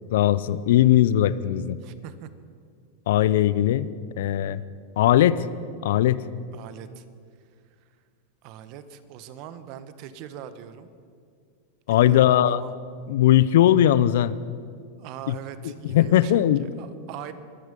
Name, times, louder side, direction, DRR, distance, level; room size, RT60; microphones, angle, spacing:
voice 1, 0.1-1.8 3.1-3.9 4.2-4.6 5.0-5.4 5.8-6.2 11.9-12.6 13.1-14.3 15.3-15.4 15.9-16.7, left 12 dB, 75° left, 17 dB, 0.5 m, -19 dB
voice 2, 1.8-2.3 6.5-7.0 8.4-10.9 11.9-12.7 15.0-16.4 16.8-17.3, right 10 dB, 50° right, 12 dB, 1.1 m, -41 dB
23.5 x 9.7 x 5.3 m, 2.1 s
hypercardioid pair, 120°, 0 cm